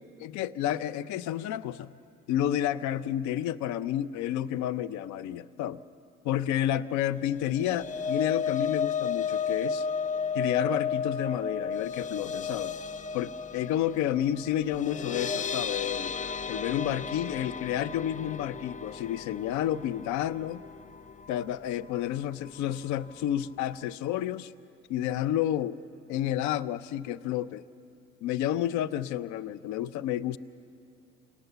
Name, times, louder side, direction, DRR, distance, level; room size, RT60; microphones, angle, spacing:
voice 1, 0.2-1.9 2.3-5.8 6.2-9.9 10.3-12.7 13.1-16.1 16.5-20.6 21.3-24.5 24.9-25.8 26.1-27.6 28.2-30.4, left 11 dB, 65° left, 17 dB, 0.6 m, -30 dB
sound 1, 7.4-21.6 21.9-22.2 22.5-22.6, left 6 dB, 25° left, 0.6 m, -33 dB
27.0 x 18.5 x 6.9 m, 2.4 s
supercardioid pair, 85°, 31 cm